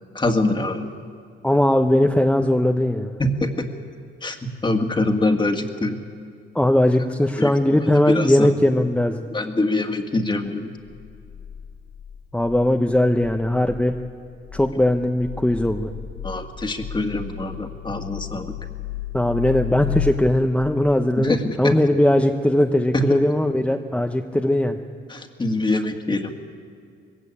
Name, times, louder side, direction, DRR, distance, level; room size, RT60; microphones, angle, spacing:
voice 1, 0.1-0.9 3.2-3.7 4.2-4.4 4.6-6.0 7.4-7.8 8.1-8.5 9.3-10.7 16.2-18.5 21.2-21.7 22.9-23.2 25.1-26.3, left 2 dB, 25° left, 5 dB, 2.0 m, -24 dB
voice 2, 1.4-3.1 6.5-9.3 12.3-14.0 14.5-15.9 19.1-24.8, left 1 dB, 5° left, 5 dB, 0.9 m, -19 dB
sound 1, 10.9-20.1, left 10 dB, 80° left, 4.6 m, -34 dB
20.5 x 16.5 x 8.6 m, 2.3 s
cardioid pair, 90°, 20 cm